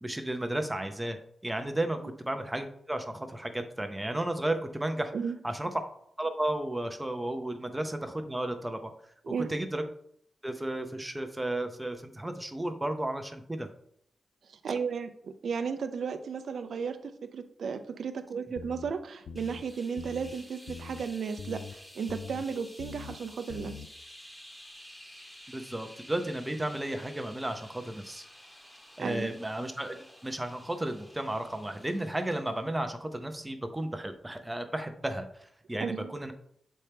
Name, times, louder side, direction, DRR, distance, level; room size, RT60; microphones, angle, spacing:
voice 1, 0.0-1.2 1.4-5.1 5.4-5.7 6.2-8.9 9.5-9.8 10.4-13.7 25.5-28.3 29.0-30.0 30.2-36.3, right 1 dB, 10° right, 7 dB, 0.5 m, -33 dB
voice 2, 14.5-23.7 29.0-29.3 35.8-36.1, right 6 dB, 65° right, 8 dB, 0.4 m, -34 dB
sound 1, 18.6-18.9 19.3-19.6 20.0-20.3 20.7-21.0 21.4-21.7 22.1-22.4 22.8-23.2 23.5-23.9, left 5 dB, 75° left, 0.3 m, -43 dB
sound 2, 19.4-32.7, equal, 10° left, 0.8 m, -52 dB
7.4 x 4.3 x 3.3 m, 0.68 s
wide cardioid pair, 175°, 0 cm